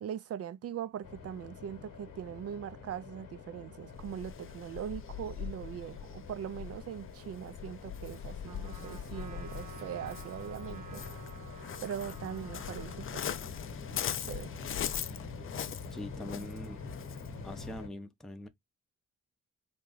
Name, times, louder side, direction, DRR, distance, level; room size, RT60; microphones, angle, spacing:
voice 1, 0.0-11.0 11.8-13.3 14.2-14.5, right 9 dB, 50° right, 0.4 m, -41 dB
sound 1, 1.0-17.9, left 4 dB, 75° left, 1.0 m, -46 dB
Waves surf, 3.9-17.8, left 9 dB, 40° left, 0.4 m, -42 dB
Trumpet, 8.4-13.1, right 6 dB, 75° right, 0.9 m, -52 dB
voice 2, 15.9-16.9 17.4-18.5, left 1 dB, ahead, 0.6 m, -43 dB
3.0 x 2.3 x 3.8 m
supercardioid pair, 55°, 32 cm